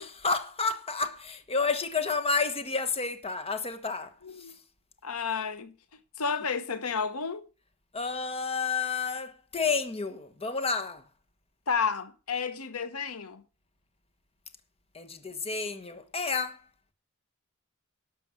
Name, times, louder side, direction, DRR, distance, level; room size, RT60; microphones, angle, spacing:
voice 1, 0.0-4.1 7.9-11.0 14.9-16.6, left 4 dB, 25° left, 1.2 m, -30 dB
voice 2, 4.2-4.6 5.0-5.7 6.2-7.4 11.7-13.4, left 5 dB, 75° left, 1.1 m, -31 dB
12.0 x 6.9 x 6.3 m
head